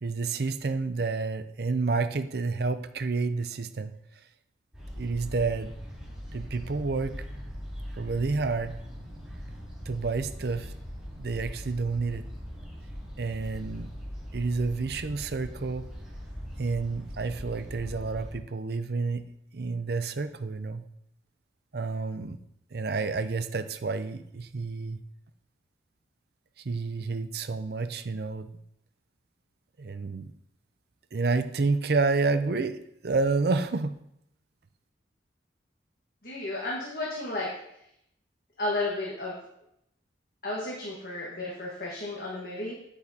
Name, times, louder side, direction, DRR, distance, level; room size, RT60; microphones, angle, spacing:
voice 1, 0.0-3.9 5.0-5.7 6.3-7.2 7.9-8.7 9.9-10.7 11.2-12.3 13.2-13.9 14.3-15.9 16.6-19.2 19.5-20.8 21.7-22.4 22.7-25.0 26.6-28.5 29.8-30.3 31.1-32.8 33.0-34.0, right 4 dB, 55° right, 10 dB, 0.5 m, -29 dB
sound 1, 4.7-18.3, equal, 5° right, 3.5 m, -41 dB
voice 2, 36.2-37.6 38.6-39.4 40.4-42.7, left 2 dB, 50° left, -4 dB, 1.5 m, -33 dB
8.7 x 8.2 x 2.8 m, 0.77 s
head